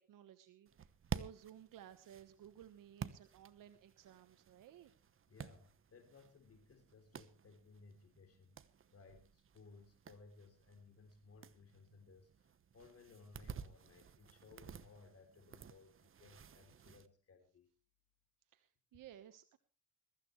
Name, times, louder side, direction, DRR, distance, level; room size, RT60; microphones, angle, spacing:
voice 1, 0.1-4.9 18.5-19.6, right 10 dB, 85° right, 10 dB, 1.3 m, -57 dB
sound 1, 0.7-17.1, right 7 dB, 40° right, 1.1 m, -52 dB
voice 2, 5.3-8.6 8.9-17.7, left 4 dB, 45° left, 7 dB, 3.2 m, -61 dB
22.0 x 14.5 x 3.2 m, 0.36 s
cardioid pair, 115°, 32 cm